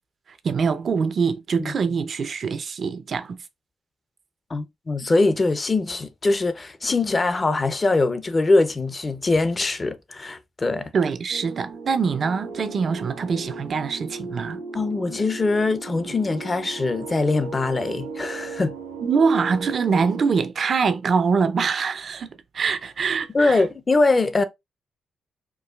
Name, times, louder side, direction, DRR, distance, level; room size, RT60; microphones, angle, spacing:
voice 1, 0.3-3.4 10.9-14.6 19.0-22.3 22.5-23.6, right 5 dB, 60° right, 0.5 m, -24 dB
voice 2, 4.5-10.9 14.7-18.7 23.3-24.4, left 3 dB, 35° left, 0.6 m, -22 dB
sound 1, 11.3-20.5, right 4 dB, 85° right, 1.3 m, -37 dB
4.6 x 2.4 x 2.3 m
supercardioid pair, 55°, 0 cm